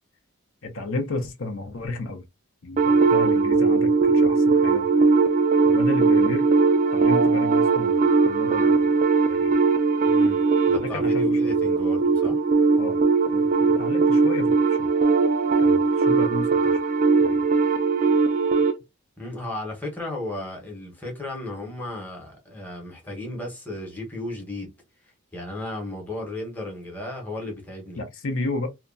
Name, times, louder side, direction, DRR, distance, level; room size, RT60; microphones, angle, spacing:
voice 1, 0.6-2.2 2.6-4.8 5.6-6.5 6.9-8.8 9.3-9.5 10.8-11.6 12.8-13.0 13.3-14.9 15.6-16.9 17.2-17.4 28.0-28.7, left 2 dB, 65° left, 0.6 m, -32 dB
sound 1, 2.8-18.8, right 4 dB, 35° right, 0.3 m, -20 dB
voice 2, 10.0-12.4 19.2-24.7 25.3-28.0, left 1 dB, 10° left, 0.9 m, -34 dB
2.8 x 2.3 x 2.5 m
head